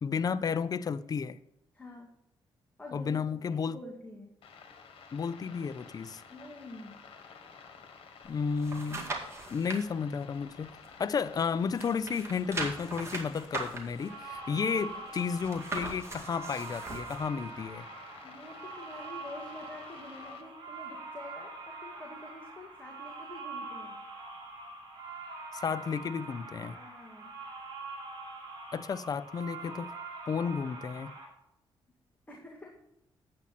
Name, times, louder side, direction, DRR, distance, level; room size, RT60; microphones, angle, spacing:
voice 1, 0.0-1.4 2.9-3.8 5.1-6.2 8.2-9.1 9.5-10.7 11.0-17.8 25.5-26.8 28.7-29.9 30.3-31.1, left 6 dB, 40° left, 0.5 m, -32 dB
voice 2, 1.7-2.1 2.8-3.1 3.5-4.3 6.3-7.0 18.2-24.0 26.6-27.3 32.3-32.8, left 2 dB, 15° left, 1.8 m, -47 dB
sound 1, 4.4-20.4, left 5 dB, 70° left, 1.6 m, -52 dB
sound 2, 8.2-9.8 10.3-11.4 11.7-17.3 17.7-17.8, right 3 dB, 30° right, 2.1 m, -40 dB
sound 3, 13.9-31.3, right 3 dB, 45° right, 3.9 m, -44 dB
8.7 x 8.6 x 4.1 m
cardioid pair, 100°, 10 cm